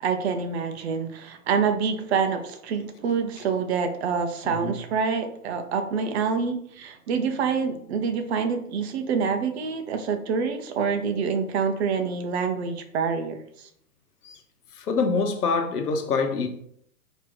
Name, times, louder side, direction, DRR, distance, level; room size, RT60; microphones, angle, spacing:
voice 1, 0.0-13.7, right 6 dB, 45° right, 0.7 m, -26 dB
voice 2, 4.4-4.8 14.2-14.4 14.8-16.5, left 4 dB, 70° left, 1.0 m, -25 dB
4.6 x 2.9 x 3.8 m
hypercardioid pair, 135°, 47 cm